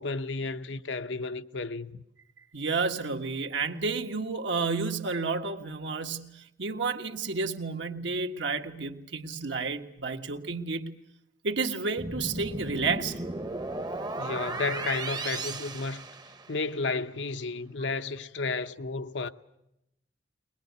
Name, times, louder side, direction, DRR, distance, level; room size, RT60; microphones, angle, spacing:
voice 1, 0.0-2.0 14.2-16.1 16.5-19.3, left 3 dB, 70° left, 0.8 m, -32 dB
voice 2, 2.5-10.9 11.4-13.2, right 4 dB, 70° right, 1.6 m, -31 dB
sound 1, 12.0-16.7, right 2 dB, 20° right, 0.9 m, -35 dB
22.5 x 20.5 x 9.5 m
head